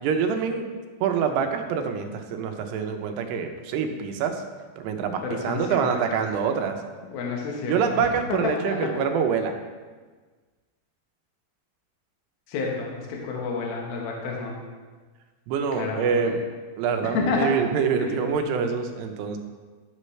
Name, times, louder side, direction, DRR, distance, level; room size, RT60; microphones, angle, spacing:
voice 1, 0.0-0.7 1.0-4.4 4.8-6.8 7.7-9.6 15.5-16.4 16.8-19.4, right 6 dB, 90° right, 5 dB, 2.9 m, -25 dB
voice 2, 5.2-6.2 7.1-8.9 12.5-14.6 15.7-16.3 17.1-17.5 18.0-18.2, left 4 dB, 70° left, -1 dB, 2.9 m, -29 dB
12.5 x 6.6 x 3.2 m, 1.4 s
omnidirectional pair, 4.7 m